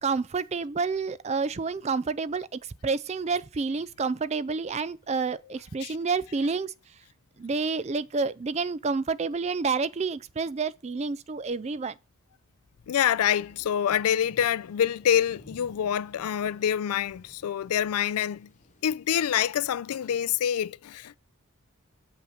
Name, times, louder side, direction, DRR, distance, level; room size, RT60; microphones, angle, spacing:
voice 1, 0.0-6.7 7.4-12.0, right 4 dB, 30° right, 0.3 m, -29 dB
voice 2, 12.9-18.5 18.8-21.2, left 9 dB, 90° left, 0.4 m, -26 dB
sound 1, 13.3-20.1, left 1 dB, 35° left, 1.1 m, -55 dB
7.2 x 5.5 x 4.9 m
head